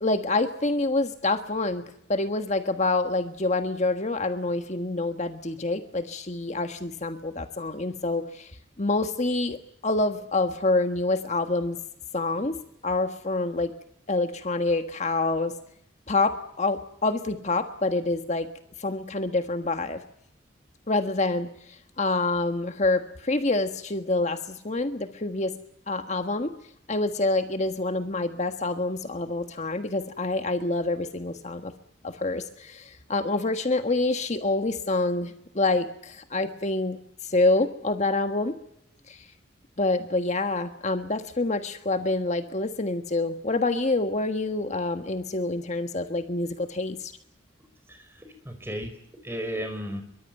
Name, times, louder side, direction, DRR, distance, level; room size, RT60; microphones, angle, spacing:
voice 1, 0.0-8.5 8.8-9.6 9.8-11.8 12.1-13.7 14.1-15.5 16.1-18.5 18.8-20.0 20.9-25.5 25.9-26.5 26.9-31.7 32.0-38.5 39.1-39.3 39.8-47.1, left 2 dB, 40° left, 7 dB, 1.5 m, -27 dB
voice 2, 47.9-48.9 49.2-50.0, equal, 15° right, 7 dB, 4.9 m, -34 dB
24.0 x 23.0 x 9.2 m, 0.71 s
head